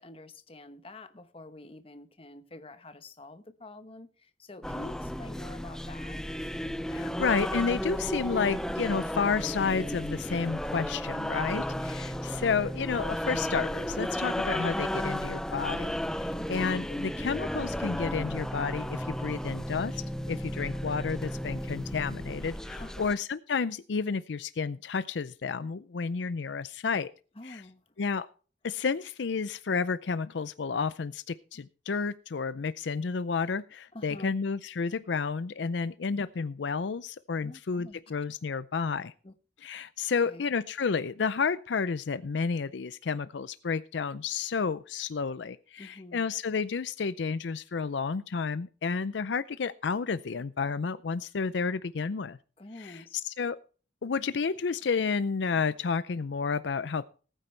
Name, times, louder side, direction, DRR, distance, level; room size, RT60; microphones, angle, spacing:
voice 1, 0.0-6.2 11.3-11.8 16.3-16.7 22.8-23.1 27.4-27.8 33.9-34.4 37.4-38.0 39.2-39.3 40.2-40.4 45.8-46.3 52.6-53.2, left 2 dB, 30° left, 1.1 m, -47 dB
sound 1, 4.6-23.1, equal, 5° left, 0.5 m, -34 dB
voice 2, 6.9-27.1 27.4-27.6 28.0-28.3 28.6-39.1 39.6-52.4 52.8-53.6 54.0-57.1, left 5 dB, 70° left, 0.5 m, -31 dB
19.5 x 9.1 x 3.3 m
head